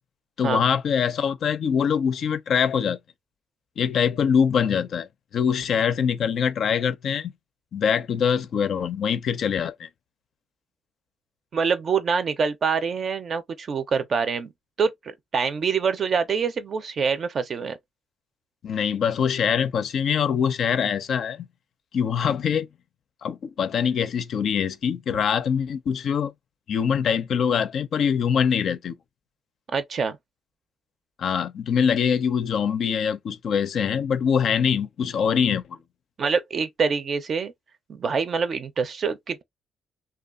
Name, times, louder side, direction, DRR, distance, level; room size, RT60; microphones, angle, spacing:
voice 1, 0.4-3.0 3.8-5.1 5.3-7.3 7.7-9.9 18.6-21.5 21.9-22.7 23.2-26.3 26.7-28.9 31.2-35.8, left 7 dB, 65° left, 0.4 m, -23 dB
voice 2, 11.5-14.5 14.8-17.8 29.7-30.2 36.2-37.5 37.9-39.4, right 5 dB, 50° right, 0.5 m, -25 dB
2.8 x 2.3 x 2.4 m
cardioid pair, 90°, 0 cm